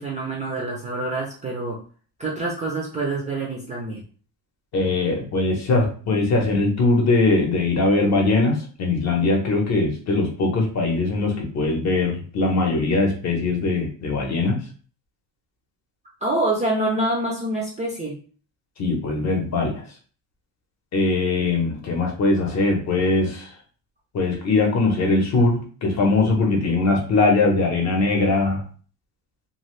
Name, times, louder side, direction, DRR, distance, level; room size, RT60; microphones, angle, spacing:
voice 1, 0.0-1.8 2.2-4.0 16.2-18.2, right 2 dB, 15° right, -3 dB, 0.4 m, -26 dB
voice 2, 4.7-14.6 18.8-19.8 20.9-23.5 24.1-28.6, left 3 dB, 40° left, 2 dB, 0.8 m, -21 dB
2.7 x 2.4 x 3.1 m, 0.41 s
cardioid pair, 160°, 43 cm